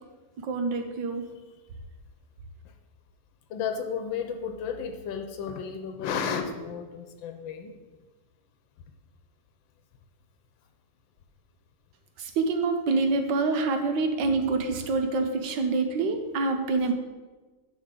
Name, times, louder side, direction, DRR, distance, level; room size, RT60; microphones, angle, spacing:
voice 1, 0.4-1.2 12.2-16.9, right 3 dB, 75° right, 5 dB, 1.4 m, -26 dB
voice 2, 3.5-7.7, left 6 dB, 80° left, 5 dB, 1.4 m, -33 dB
9.9 x 3.7 x 6.7 m, 1.3 s
omnidirectional pair, 2.1 m